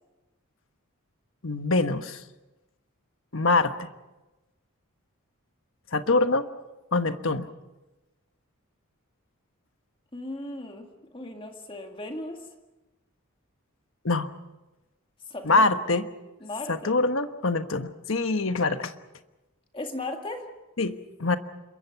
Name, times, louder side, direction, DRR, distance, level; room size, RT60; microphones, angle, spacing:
voice 1, 1.4-2.2 3.3-3.9 5.9-6.5 6.9-7.5 14.0-14.3 15.4-16.1 16.7-18.9 20.8-21.4, left 3 dB, 65° left, 9 dB, 1.2 m, -24 dB
voice 2, 10.1-12.5 15.3-15.7 16.4-16.9 19.7-20.5, left 2 dB, 25° left, 4 dB, 1.9 m, -37 dB
27.5 x 22.5 x 5.9 m, 1.1 s
head